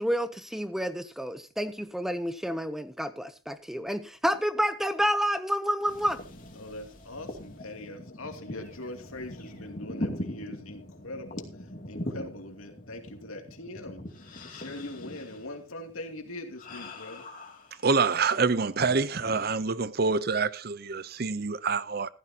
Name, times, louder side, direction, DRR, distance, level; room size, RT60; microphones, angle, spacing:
voice 1, 0.0-6.2, equal, ahead, 0.7 m, -29 dB
sound 1, 5.9-18.3 18.7-19.5, left 1 dB, 40° left, 2.6 m, -41 dB
voice 2, 6.6-11.5 11.9-14.1 14.5-17.3, left 1 dB, 90° left, 2.7 m, -42 dB
voice 3, 17.8-22.1, right 4 dB, 45° right, 0.7 m, -26 dB
15.0 x 14.0 x 2.9 m
head